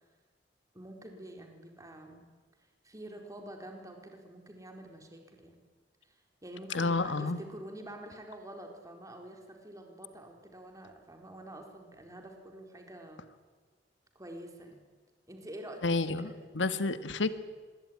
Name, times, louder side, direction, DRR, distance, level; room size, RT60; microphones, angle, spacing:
voice 1, 0.7-2.2 2.8-5.6 6.0-13.2 14.1-14.8 15.3-16.5, right 1 dB, 20° right, 3 dB, 4.2 m, -47 dB
voice 2, 6.7-7.4 15.8-17.3, left 3 dB, 90° left, 11 dB, 1.6 m, -30 dB
26.5 x 21.5 x 9.8 m, 1.4 s
head